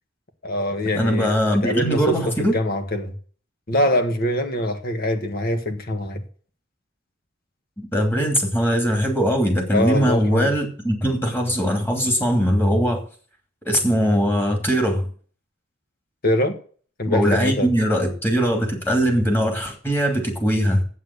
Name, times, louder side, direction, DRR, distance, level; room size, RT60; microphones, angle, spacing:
voice 1, 0.4-3.1 3.7-6.2 9.7-10.5 16.2-16.6 17.0-17.7, left 1 dB, 50° left, 1.6 m, -23 dB
voice 2, 0.9-2.6 7.9-13.0 13.7-15.1 17.1-20.8, equal, 10° left, 2.7 m, -21 dB
8.4 x 7.4 x 8.4 m
head